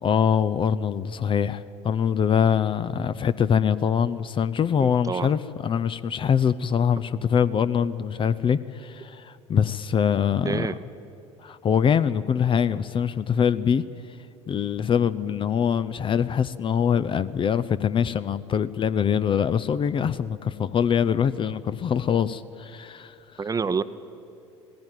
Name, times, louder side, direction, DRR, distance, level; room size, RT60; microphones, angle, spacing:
voice 1, 0.0-10.7 11.4-13.8 14.5-23.4, left 7 dB, 30° left, 14 dB, 0.6 m, -24 dB
voice 2, 4.8-5.3 10.4-10.8 23.4-23.8, right 5 dB, 20° right, 13 dB, 0.8 m, -27 dB
18.5 x 15.5 x 9.1 m, 2.6 s
hypercardioid pair, 70°, 16 cm